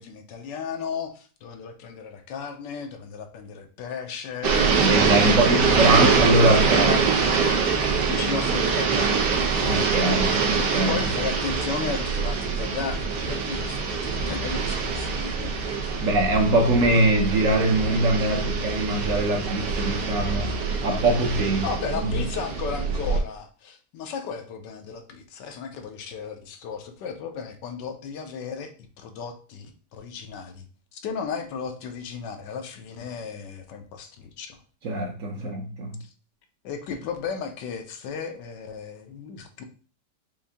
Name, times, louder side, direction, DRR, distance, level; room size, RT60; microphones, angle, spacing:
voice 1, 0.0-4.9 5.3-7.0 8.1-9.8 10.7-15.5 16.0-16.1 21.6-28.7 29.0-30.7 30.9-34.6 35.4-35.6 36.6-39.6, left 6 dB, 90° left, 6 dB, 1.3 m, -35 dB
sound 1, 4.4-23.2, right 5 dB, 80° right, 1.4 m, -24 dB
voice 2, 4.8-7.0 9.7-11.0 16.0-20.5 20.8-21.6 22.0-22.1 34.8-35.9, right 2 dB, 60° right, 2 dB, 1.0 m, -22 dB
5.5 x 2.6 x 3.4 m, 0.41 s
omnidirectional pair, 1.8 m